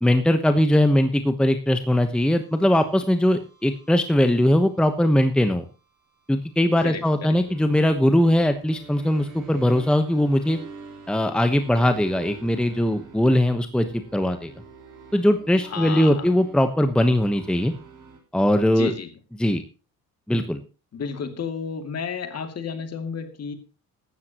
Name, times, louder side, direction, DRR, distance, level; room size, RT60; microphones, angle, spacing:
voice 1, 0.0-5.6 6.3-10.6 11.1-14.5 15.1-17.7 18.3-18.9 19.4-19.6 20.3-20.6, left 1 dB, ahead, 8 dB, 1.0 m, -20 dB
sound 1, 1.7-18.2, right 4 dB, 55° right, 5.0 m, -46 dB
voice 2, 6.8-7.4 15.6-16.3 18.7-19.1 20.9-23.5, left 6 dB, 45° left, 7 dB, 2.6 m, -32 dB
15.5 x 12.5 x 3.0 m, 0.33 s
cardioid pair, 145°, 37 cm